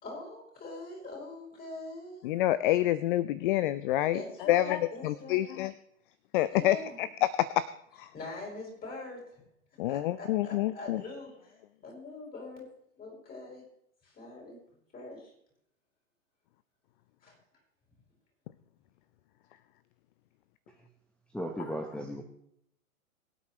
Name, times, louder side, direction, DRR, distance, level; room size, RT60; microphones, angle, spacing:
voice 1, 0.0-2.2 4.1-5.5 6.5-7.0 8.1-9.2 9.8-12.7 13.0-13.6 14.0-14.6 14.9-15.3 17.2-17.4, left 2 dB, 20° left, -1 dB, 5.8 m, -43 dB
voice 2, 2.2-4.2 4.5-5.7 6.3-7.6 8.0-8.1 9.8-11.0 21.6-21.7, left 14 dB, 40° left, 16 dB, 0.6 m, -27 dB
voice 3, 21.3-22.2, equal, 5° left, 4 dB, 1.0 m, -35 dB
23.0 x 8.4 x 3.2 m, 0.72 s
hypercardioid pair, 125°, 42 cm